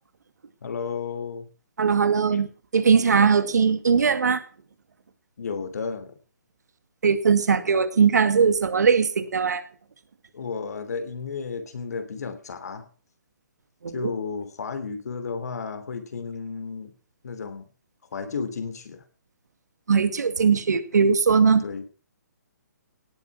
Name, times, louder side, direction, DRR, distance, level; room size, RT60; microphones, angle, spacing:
voice 1, 0.6-1.5 2.3-2.4 5.4-6.1 10.3-12.9 13.9-16.9 17.2-17.7 18.1-19.0 21.6-21.8, left 5 dB, 65° left, 3.2 m, -33 dB
voice 2, 1.8-2.5 2.7-4.4 7.0-9.6 13.8-14.1 19.9-21.6, right 5 dB, 70° right, 2.1 m, -20 dB
17.5 x 9.7 x 6.1 m
figure-of-eight pair, 140°, 10 cm